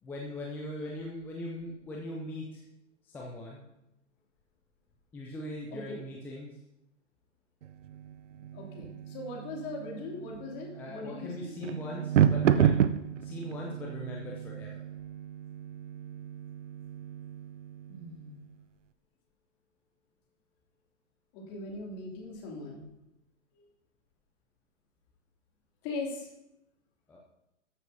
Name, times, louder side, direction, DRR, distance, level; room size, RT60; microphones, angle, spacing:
voice 1, 0.0-2.6 3.0-3.7 5.1-6.6 10.7-12.8 13.2-14.8 27.1-27.2, left 1 dB, 5° left, -2 dB, 0.4 m, -40 dB
sound 1, 7.6-18.4, right 9 dB, 75° right, 0.6 m, -31 dB
voice 2, 8.5-11.5 17.9-18.4 21.3-22.9 23.5-23.6 25.8-26.3, left 2 dB, 35° left, -2 dB, 2.8 m, -40 dB
13.5 x 7.1 x 2.7 m, 0.87 s
hypercardioid pair, 130°, 37 cm